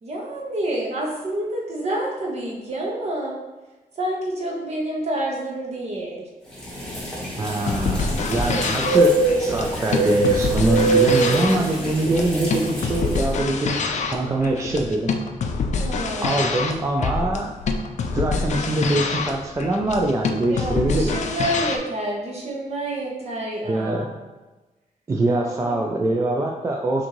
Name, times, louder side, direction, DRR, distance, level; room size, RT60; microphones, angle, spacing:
voice 1, 0.0-3.4 4.0-6.2 15.8-16.5 20.5-24.1 25.4-25.8, right 1 dB, 50° right, -2 dB, 1.1 m, -28 dB
sound 1, 6.6-13.2, right 2 dB, 5° left, 1.2 m, -23 dB
voice 2, 7.4-15.2 16.2-17.5 18.1-21.1 23.7-24.1 25.1-27.1, right 2 dB, 20° right, 0 dB, 0.3 m, -23 dB
sound 2, 7.6-21.8, left 4 dB, 55° left, 0.4 m, -26 dB
6.1 x 2.6 x 3.0 m, 1.2 s
wide cardioid pair, 155°, 14 cm